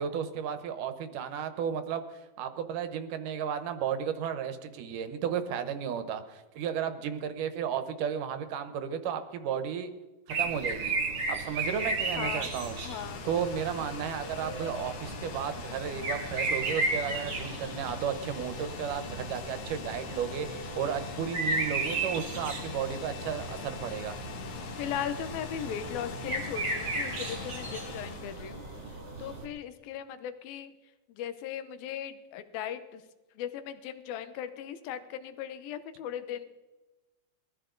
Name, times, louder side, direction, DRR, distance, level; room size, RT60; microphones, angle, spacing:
voice 1, 0.0-9.9 10.4-12.8 13.2-24.2, right 8 dB, 70° right, 10 dB, 2.4 m, -34 dB
sound 1, 10.3-29.4, right 3 dB, 35° right, 2.6 m, -35 dB
sound 2, 11.1-29.2, left 6 dB, 60° left, 2.1 m, -43 dB
voice 2, 12.2-12.5 12.8-13.2 24.8-28.6 29.2-30.7 31.1-33.0 33.4-36.5, left 9 dB, 80° left, 10 dB, 2.8 m, -38 dB
22.0 x 14.0 x 3.9 m, 1.1 s
omnidirectional pair, 4.2 m